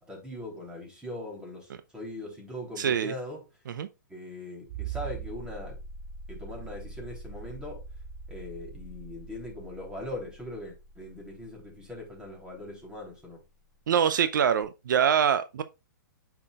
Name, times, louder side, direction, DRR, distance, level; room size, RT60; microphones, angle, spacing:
voice 1, 0.0-3.5 4.1-5.8 6.3-7.8 8.3-13.4, left 1 dB, 10° right, 3.4 m, -40 dB
voice 2, 2.8-3.1 3.7-3.9 13.9-15.6, right 8 dB, 70° right, 0.6 m, -24 dB
sound 1, 4.7-13.1 14.6-14.7, right 5 dB, 30° right, 2.5 m, -42 dB
8.7 x 5.9 x 2.4 m
hypercardioid pair, 130°, 11 cm